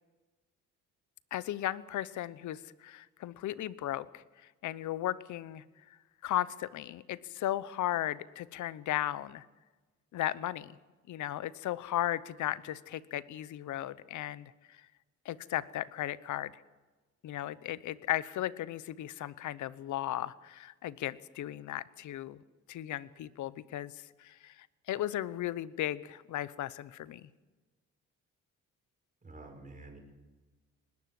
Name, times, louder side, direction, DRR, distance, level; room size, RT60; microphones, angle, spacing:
voice 1, 1.3-4.2 4.6-5.6 6.2-9.5 10.1-10.7 11.1-14.9 15.2-16.6 17.2-22.4 22.7-27.3, left 13 dB, 75° left, 18 dB, 0.9 m, -36 dB
voice 2, 29.2-30.0, right 2 dB, 25° right, 3 dB, 5.7 m, -49 dB
20.0 x 18.0 x 7.7 m, 1.2 s
cardioid pair, 90°, 30 cm